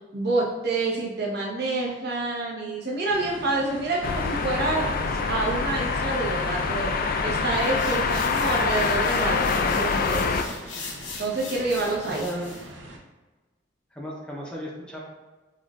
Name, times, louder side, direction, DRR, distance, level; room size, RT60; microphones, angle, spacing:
voice 1, 0.1-6.9 7.2-10.6 11.2-12.2, right 2 dB, 60° right, -4 dB, 1.0 m, -28 dB
sound 1, 3.1-13.0, right 1 dB, 80° right, 0.6 m, -42 dB
sound 2, 4.0-10.4, left 4 dB, 50° left, 0.3 m, -25 dB
sound 3, 7.5-12.7, left 4 dB, 75° left, 0.8 m, -40 dB
voice 2, 12.1-12.6 13.9-15.0, equal, 5° left, -4 dB, 0.6 m, -35 dB
6.0 x 2.4 x 2.4 m, 1.2 s
head